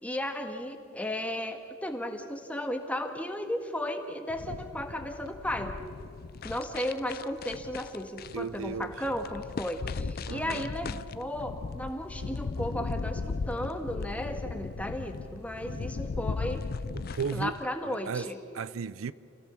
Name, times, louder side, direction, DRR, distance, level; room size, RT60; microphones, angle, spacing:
voice 1, 0.0-5.8 6.4-16.7 17.3-18.4, left 1 dB, 5° left, 1.6 m, -35 dB
sound 1, 4.3-17.6, left 4 dB, 50° left, 0.4 m, -37 dB
voice 2, 8.3-8.9 10.3-10.7 16.9-17.6 17.8-18.3 18.5-19.1, right 5 dB, 90° right, 0.5 m, -35 dB
28.0 x 17.5 x 7.1 m
head